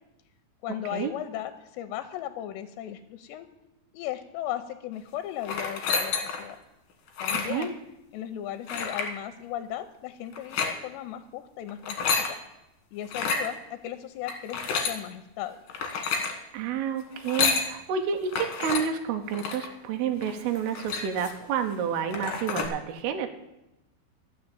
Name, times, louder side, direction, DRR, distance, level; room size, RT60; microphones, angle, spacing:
voice 1, 0.6-3.5 3.9-6.6 7.2-7.8 8.1-12.1 12.9-15.6, left 12 dB, 85° left, 8 dB, 2.8 m, -36 dB
sound 1, 5.4-6.5 7.1-7.7 8.7-9.1 10.3-10.7 11.7-12.3 13.0-13.5 14.3-15.0 15.7-16.3 17.1-17.7 18.3-18.8 19.3-19.7 20.2-20.3 20.6-21.4 21.8-21.9 22.1-22.7, left 5 dB, 60° left, 2.8 m, -29 dB
voice 2, 7.3-7.7 16.5-23.3, right 7 dB, 75° right, 5 dB, 2.6 m, -30 dB
12.0 x 6.3 x 8.7 m, 0.93 s
omnidirectional pair, 5.0 m